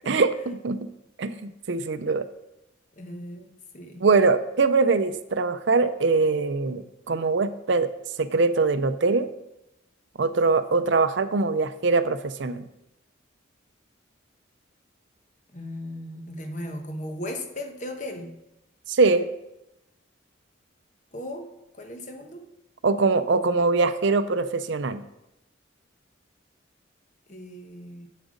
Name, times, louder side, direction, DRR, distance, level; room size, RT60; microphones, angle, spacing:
voice 1, 0.1-0.9 1.2-2.3 4.0-7.9 8.2-9.3 10.2-12.7 18.9-19.3 22.8-25.0, right 4 dB, 65° right, 12 dB, 0.5 m, -22 dB
voice 2, 3.0-4.0 15.5-18.4 21.1-21.5 21.7-22.4 27.3-28.1, left 1 dB, 40° left, 4 dB, 1.2 m, -37 dB
8.1 x 7.6 x 5.1 m, 0.91 s
head